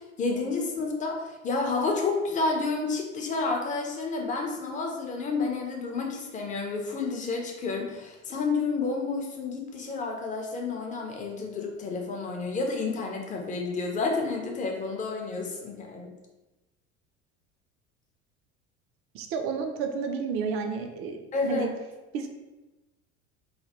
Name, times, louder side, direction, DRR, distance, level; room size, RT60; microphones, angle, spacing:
voice 1, 0.2-16.1 21.3-21.7, left 3 dB, 20° left, 1 dB, 0.5 m, -30 dB
voice 2, 19.1-21.7 22.1-22.3, right 5 dB, 35° right, 5 dB, 0.4 m, -31 dB
3.2 x 2.2 x 2.8 m, 1.1 s
figure-of-eight pair, 65°, 38 cm